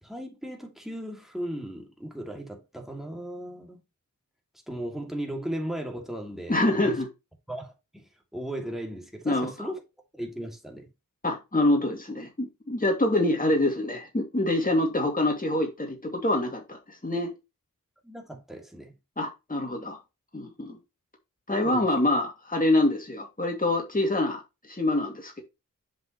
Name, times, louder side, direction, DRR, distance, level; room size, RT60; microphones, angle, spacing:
voice 1, 0.0-3.8 4.7-7.0 7.5-9.8 10.1-10.9 18.0-18.9 21.5-21.9, right 1 dB, ahead, 2.4 m, -36 dB
voice 2, 6.5-7.1 9.2-9.7 11.2-17.3 19.2-20.0 20.3-20.8 21.5-25.4, left 1 dB, 25° left, 2.4 m, -26 dB
7.7 x 5.5 x 3.1 m
wide cardioid pair, 75°, 33 cm